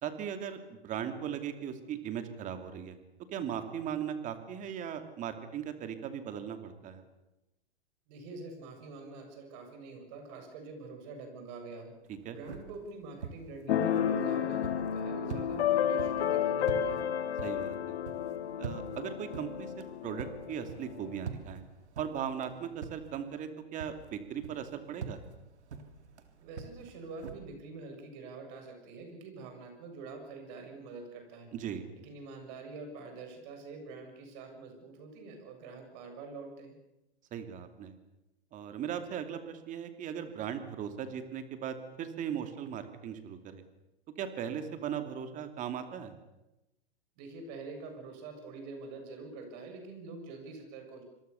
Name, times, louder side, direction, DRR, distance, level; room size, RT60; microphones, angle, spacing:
voice 1, 0.0-3.0 3.3-7.0 12.2-12.4 17.4-18.0 18.6-21.6 22.0-25.2 31.5-31.9 37.3-37.9 38.5-43.6 44.2-46.1, right 8 dB, 25° right, 8 dB, 2.7 m, -38 dB
voice 2, 8.1-11.9 12.3-17.0 26.4-31.5 32.0-36.8 47.2-51.0, right 3 dB, 40° right, 5 dB, 7.3 m, -46 dB
sound 1, 12.0-23.5 23.8-27.3, right 5 dB, 90° right, 3.4 m, -46 dB
Keyboard (musical), 13.7-21.2, left 9 dB, 65° left, 3.0 m, -31 dB
27.0 x 22.0 x 7.0 m, 0.95 s
hypercardioid pair, 150°, 33 cm